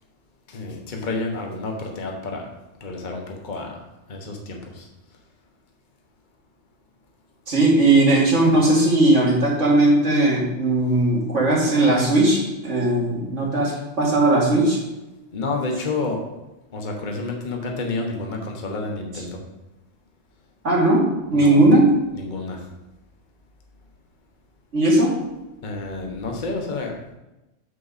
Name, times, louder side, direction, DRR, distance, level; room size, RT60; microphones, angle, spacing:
voice 1, 0.5-2.5 2.8-3.8 4.1-4.9 15.3-16.2 16.7-19.4 21.3-21.6 22.1-22.7 25.6-27.0, left 3 dB, 40° left, 1 dB, 1.2 m, -29 dB
voice 2, 7.5-14.8 20.6-22.0 24.7-25.2, right 2 dB, 70° right, -4 dB, 2.6 m, -18 dB
7.8 x 6.7 x 4.1 m, 1.0 s
omnidirectional pair, 1.3 m